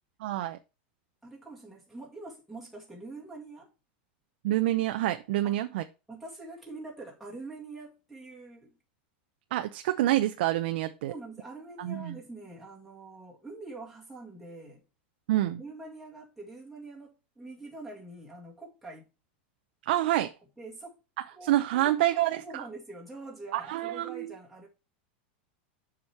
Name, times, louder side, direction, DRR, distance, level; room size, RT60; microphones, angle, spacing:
voice 1, 0.2-0.6 4.4-5.8 9.5-11.1 11.8-12.2 15.3-15.6 19.9-20.3 21.4-22.6 23.5-24.3, right 14 dB, 70° right, 0.6 m, -27 dB
voice 2, 1.2-3.7 5.4-5.6 6.1-8.8 11.1-14.8 15.3-19.1 20.2-20.3 20.6-21.0 21.3-24.7, right 2 dB, ahead, 2.1 m, -45 dB
7.2 x 5.0 x 4.5 m
supercardioid pair, 145°, 6 cm